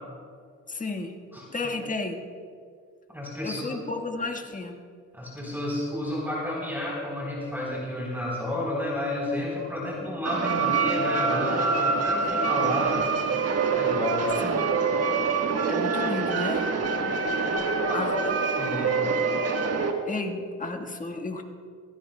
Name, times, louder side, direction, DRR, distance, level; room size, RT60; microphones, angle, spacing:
voice 1, 0.7-1.1 1.5-2.2 3.4-4.7 14.4-14.7 14.9-15.0 15.7-16.7 17.9-18.4 20.0-21.4, left 3 dB, 25° left, 4 dB, 1.4 m, -32 dB
voice 2, 3.1-3.8 5.1-13.2 13.7-14.4 17.5-18.0 18.6-19.1, left 1 dB, 5° right, -4 dB, 3.7 m, -31 dB
sound 1, 10.2-19.9, right 4 dB, 55° right, 1.3 m, -25 dB
21.5 x 16.0 x 2.2 m, 2.2 s
cardioid pair, 90°, 30 cm